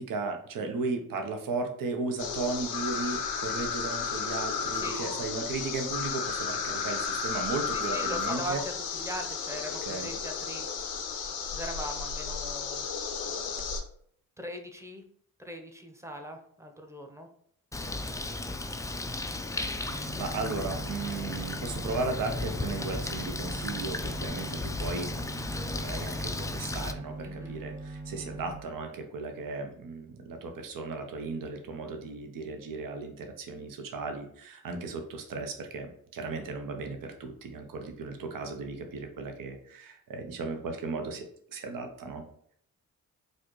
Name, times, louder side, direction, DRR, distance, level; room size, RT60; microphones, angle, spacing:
voice 1, 0.0-8.6 9.8-10.1 19.9-25.1 25.4-42.2, right 3 dB, 65° right, 5 dB, 0.8 m, -36 dB
sound 1, 2.2-13.8, left 6 dB, 90° left, 0.7 m, -33 dB
voice 2, 4.7-5.0 7.7-10.7 11.5-12.9 14.4-15.0 15.4-17.3 27.2-27.6, equal, 10° right, 5 dB, 0.8 m, -40 dB
Bird, 17.7-26.9, left 2 dB, 10° left, 0.3 m, -35 dB
sound 2, 19.9-28.6, right 2 dB, 80° right, 1.3 m, -41 dB
4.2 x 2.5 x 3.0 m, 0.63 s
supercardioid pair, 55°, 36 cm